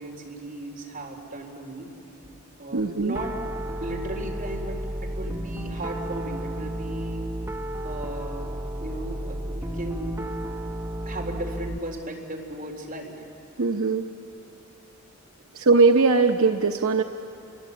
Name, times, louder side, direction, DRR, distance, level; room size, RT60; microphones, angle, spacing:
voice 1, 0.0-1.9 2.6-3.3 3.8-7.3 7.8-10.3 11.1-13.2, right 1 dB, 40° right, 0 dB, 3.8 m, -36 dB
voice 2, 2.7-3.2 13.6-14.1 15.5-17.0, right 4 dB, 75° right, 5 dB, 0.8 m, -20 dB
Piano, 3.2-11.8, right 1 dB, 15° right, 0.7 m, -32 dB
28.5 x 23.0 x 8.4 m, 2.8 s
head